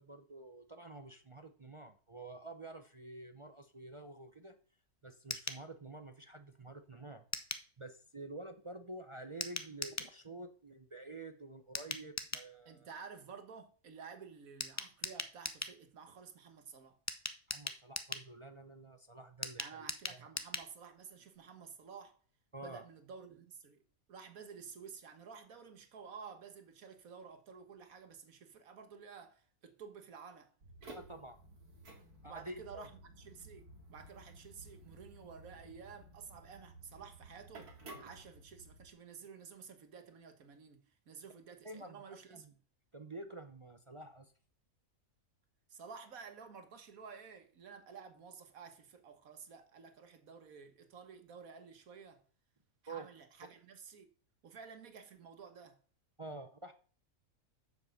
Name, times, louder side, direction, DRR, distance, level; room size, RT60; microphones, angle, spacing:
voice 1, 0.0-4.6 5.0-7.3 7.8-12.9 17.5-20.3 22.5-22.8 30.9-31.4 32.2-32.9 41.6-42.0 42.3-42.5 42.9-44.3 52.9-53.1 56.2-56.7, right 2 dB, 35° right, 0.5 m, -49 dB
sound 1, 5.3-5.6 7.3-7.7 9.4-10.1 11.7-12.5 14.6-15.8 17.1-18.3 19.4-20.7 21.0-21.1 21.4-21.5, left 2 dB, 20° left, 0.4 m, -40 dB
voice 2, 12.7-17.0 19.6-22.2 22.6-23.8 24.1-30.5 32.2-42.6 45.7-52.2 52.8-54.1 54.4-55.8, right 6 dB, 65° right, 1.8 m, -52 dB
sound 2, 30.6-38.9, right 2 dB, 80° right, 2.7 m, -55 dB
8.2 x 7.3 x 6.6 m
omnidirectional pair, 1.6 m